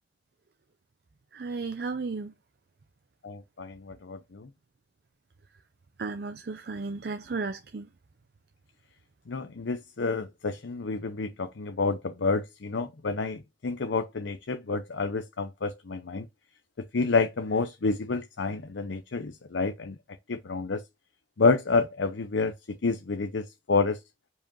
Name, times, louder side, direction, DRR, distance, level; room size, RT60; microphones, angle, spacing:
voice 1, 1.3-2.3 6.0-7.9, right 4 dB, 55° right, 0.5 m, -34 dB
voice 2, 3.2-4.5 9.3-16.3 16.9-20.0 20.3-20.8 21.4-24.0, left 4 dB, 80° left, 0.7 m, -29 dB
5.0 x 4.9 x 5.3 m
head